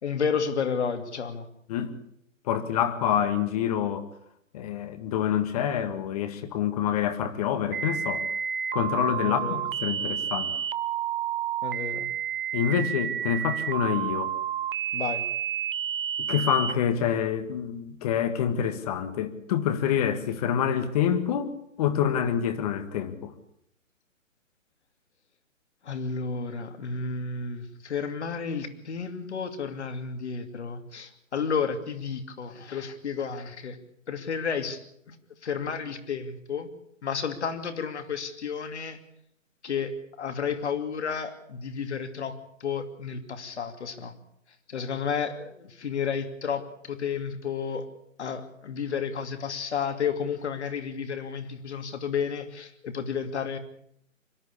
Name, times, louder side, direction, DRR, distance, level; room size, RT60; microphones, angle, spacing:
voice 1, 0.0-1.5 9.2-9.7 11.6-12.1 14.9-15.2 25.8-33.8 34.1-34.8 35.1-35.2 35.4-36.7 37.0-39.0 39.6-44.1 44.7-47.8 48.2-53.6, left 6 dB, 55° left, 2.8 m, -32 dB
voice 2, 2.4-4.1 4.5-8.2 8.7-10.5 12.5-14.3 16.2-21.5 21.8-23.3, left 9 dB, 30° left, 1.8 m, -27 dB
sound 1, 7.7-16.7, right 9 dB, 40° right, 0.8 m, -30 dB
25.0 x 12.5 x 8.5 m
figure-of-eight pair, 140°, 39 cm